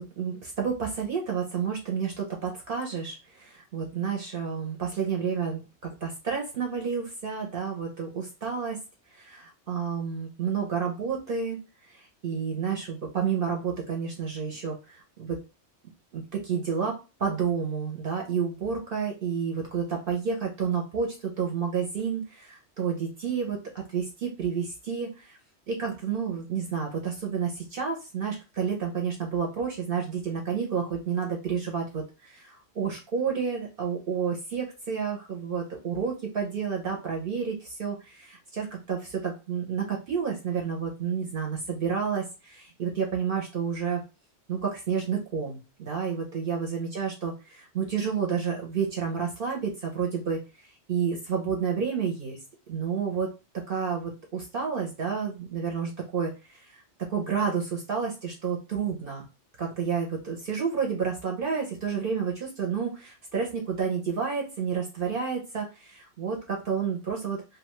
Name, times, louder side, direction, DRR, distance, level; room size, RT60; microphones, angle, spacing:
voice 1, 0.0-8.8 9.1-11.6 11.9-15.4 16.1-25.4 25.7-44.0 44.5-50.4 50.9-52.4 52.7-53.3 53.7-56.8 57.1-59.3 59.6-67.4, right 6 dB, 60° right, 0 dB, 0.7 m, -30 dB
2.6 x 2.2 x 2.9 m, 0.30 s
omnidirectional pair, 1.1 m